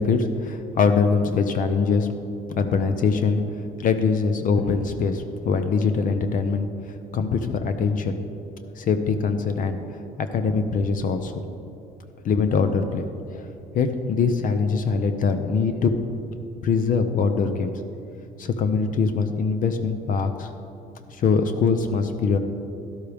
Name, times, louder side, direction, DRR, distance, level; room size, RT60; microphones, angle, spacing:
voice 1, 0.0-2.1 2.5-8.2 8.6-9.8 10.2-11.4 12.2-13.4 13.7-15.9 16.6-17.7 18.4-20.5 21.1-22.4, left 5 dB, 55° left, 8 dB, 0.7 m, -23 dB
12.0 x 12.0 x 3.5 m, 2.7 s
cardioid pair, 110°, 17 cm